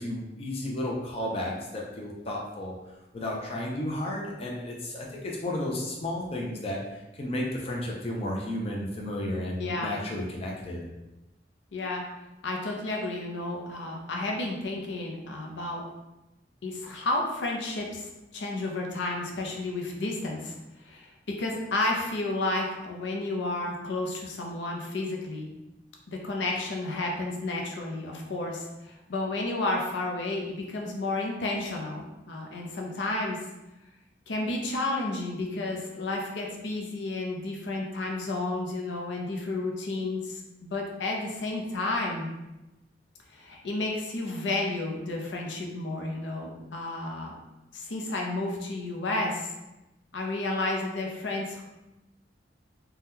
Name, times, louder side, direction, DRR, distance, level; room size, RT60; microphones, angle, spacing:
voice 1, 0.0-2.7 3.1-10.8, left 1 dB, 35° left, -3 dB, 0.5 m, -33 dB
voice 2, 9.6-10.0 11.7-12.0 12.4-15.9 16.6-25.5 26.1-33.4 34.3-42.3 43.3-47.4 47.7-49.5 50.1-51.6, left 2 dB, 85° left, 0 dB, 0.6 m, -31 dB
2.7 x 2.2 x 3.5 m, 0.99 s
head